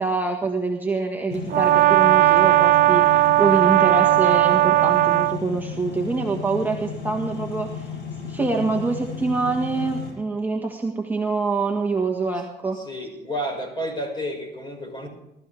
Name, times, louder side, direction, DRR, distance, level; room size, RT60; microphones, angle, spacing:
voice 1, 0.0-7.9 8.2-12.8, right 3 dB, 10° right, 1 dB, 1.6 m, -25 dB
sound 1, 1.3-10.1, left 6 dB, 85° left, 6.2 m, -34 dB
Brass instrument, 1.5-5.4, right 17 dB, 55° right, 0.6 m, -17 dB
voice 2, 12.7-15.1, equal, 25° left, 3 dB, 5.6 m, -31 dB
21.0 x 13.5 x 3.5 m, 0.91 s
cardioid pair, 110°, 17 cm